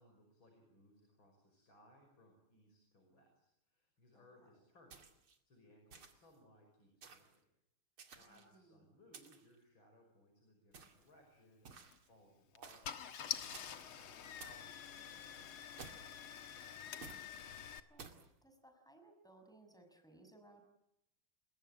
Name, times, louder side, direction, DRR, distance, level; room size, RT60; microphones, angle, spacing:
voice 1, 0.0-7.4 8.1-11.8 12.1-13.5 13.9-15.9, left 1 dB, 65° left, 3 dB, 6.4 m, -66 dB
sound 1, 4.9-5.4 5.9-6.4 7.0-7.4 8.0-8.6 9.1-9.6 10.7-11.1 11.7-12.1 12.6-13.0 13.5-13.9 14.4-14.7 15.8-16.2 17.0-17.3 18.0-18.3, right 5 dB, 90° right, 3.3 m, -55 dB
voice 2, 8.2-8.8 16.7-17.0 17.9-18.1 18.4-20.6, right 2 dB, ahead, 6 dB, 6.0 m, -63 dB
Car / Engine starting, 11.7-11.9 12.5-12.6 12.8-17.8, left 9 dB, 85° left, 2.3 m, -47 dB
30.0 x 21.5 x 9.0 m, 0.84 s
omnidirectional pair, 2.3 m